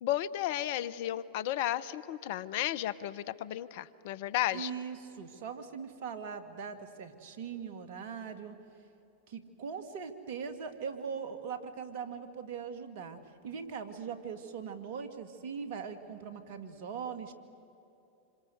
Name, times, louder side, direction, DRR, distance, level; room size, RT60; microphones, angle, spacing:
voice 1, 0.0-4.7, left 13 dB, 60° left, 17 dB, 0.9 m, -33 dB
voice 2, 4.5-8.6 9.3-17.3, right 6 dB, 60° right, 9 dB, 2.4 m, -41 dB
27.0 x 26.5 x 8.0 m, 2.9 s
hypercardioid pair, 95°, 0 cm